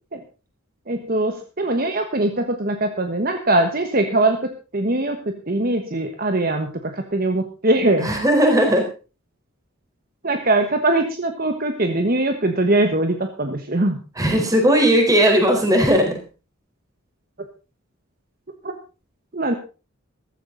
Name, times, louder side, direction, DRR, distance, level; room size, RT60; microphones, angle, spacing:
voice 1, 0.9-8.1 10.2-14.0 18.6-18.7 19.3-19.5, right 2 dB, 45° right, 6 dB, 1.3 m, -21 dB
voice 2, 8.0-8.9 14.2-16.1, equal, 15° right, 2 dB, 4.1 m, -17 dB
15.0 x 14.0 x 3.9 m, 0.33 s
head